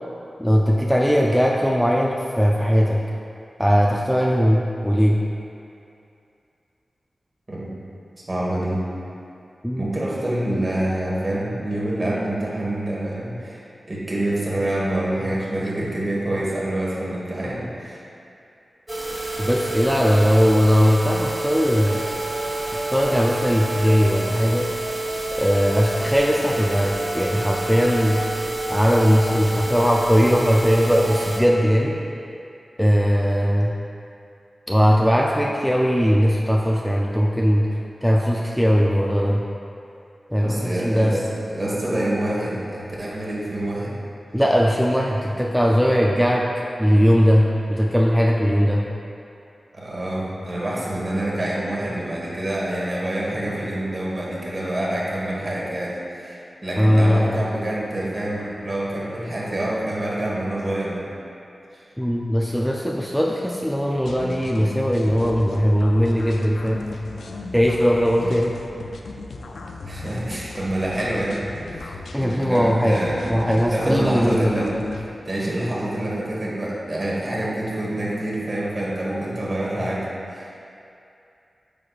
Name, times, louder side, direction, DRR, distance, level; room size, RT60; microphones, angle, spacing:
voice 1, 0.4-3.0 3.6-5.2 9.6-9.9 19.4-22.1 22.9-24.7 25.4-28.2 28.7-31.9 32.8-33.7 34.7-37.7 38.0-39.4 40.3-41.2 44.3-46.5 46.8-48.9 56.8-57.4 62.0-66.8 67.5-68.5 72.1-73.0 73.3-74.5, equal, ahead, -2 dB, 0.4 m, -19 dB
voice 2, 8.2-8.8 9.8-13.6 13.9-18.0 40.4-41.2 41.5-44.0 49.7-61.1 61.7-61.8 69.8-71.5 71.7-72.0 72.3-80.5, right 1 dB, 45° right, -5 dB, 1.5 m, -26 dB
sound 1, 18.9-31.4, right 2 dB, 30° right, 1.1 m, -28 dB
sound 2, 64.0-75.1, left 2 dB, 90° left, 0.4 m, -36 dB
8.5 x 4.8 x 2.4 m, 2.6 s
cardioid pair, 55°, 0 cm